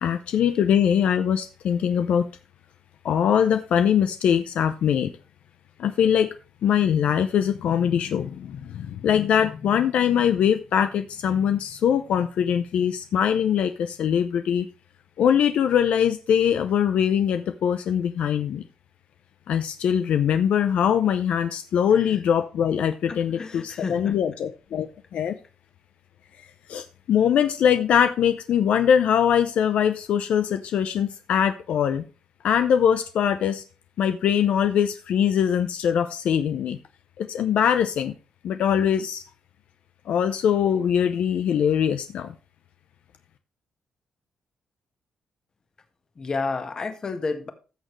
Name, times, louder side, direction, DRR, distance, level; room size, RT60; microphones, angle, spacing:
voice 1, 0.0-2.3 3.0-5.1 5.8-6.3 6.6-14.7 15.2-18.6 19.5-24.9 25.1-25.3 26.7-32.0 32.4-33.6 34.0-36.8 37.2-38.1 38.4-39.2 40.1-42.3, left 8 dB, 70° left, 9 dB, 0.7 m, -22 dB
voice 2, 23.1-24.2 46.2-47.5, left 4 dB, 30° left, 7 dB, 1.6 m, -31 dB
14.5 x 6.6 x 3.2 m, 0.34 s
cardioid pair, 140°, 2 cm